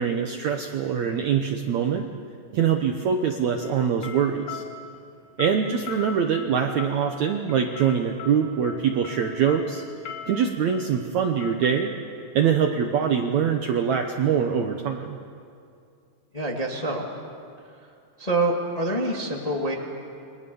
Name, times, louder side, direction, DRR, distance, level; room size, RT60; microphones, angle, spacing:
voice 1, 0.0-2.1 2.5-4.6 5.4-9.8 10.3-11.9 12.4-15.2, right 7 dB, 70° right, 4 dB, 1.8 m, -24 dB
sound 1, 3.6-13.5, left 6 dB, 80° left, 4.1 m, -41 dB
voice 2, 16.3-17.1 17.8-17.9 18.2-19.7, right 2 dB, 15° left, 0 dB, 1.3 m, -26 dB
29.5 x 23.0 x 7.1 m, 2.4 s
omnidirectional pair, 4.4 m